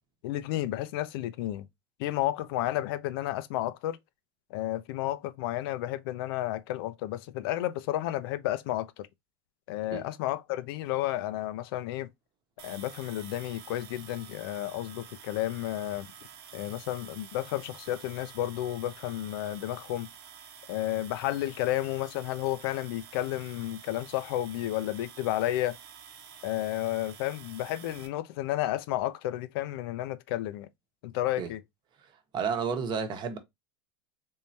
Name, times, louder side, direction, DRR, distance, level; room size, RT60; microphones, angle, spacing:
voice 1, 0.2-1.7 2.0-4.0 4.5-9.1 9.7-12.1 12.6-16.1 16.5-20.1 20.7-25.8 26.4-30.7 31.0-31.6, left 14 dB, 70° left, 0.5 m, -32 dB
sound 1, 12.6-28.1, right 8 dB, 80° right, 1.0 m, -49 dB
voice 2, 32.3-33.4, right 6 dB, 35° right, 0.9 m, -31 dB
3.6 x 3.2 x 2.7 m
supercardioid pair, 120°, 13 cm